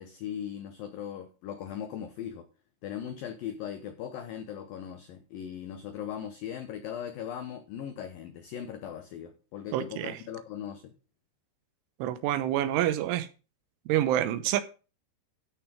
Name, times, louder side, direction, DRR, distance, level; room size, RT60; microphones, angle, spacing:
voice 1, 0.0-2.5 2.8-10.9, left 9 dB, 85° left, 2.0 m, -39 dB
voice 2, 9.7-10.2 12.0-13.3 13.9-14.6, right 12 dB, 85° right, 3.4 m, -27 dB
13.0 x 6.1 x 4.9 m
omnidirectional pair, 5.4 m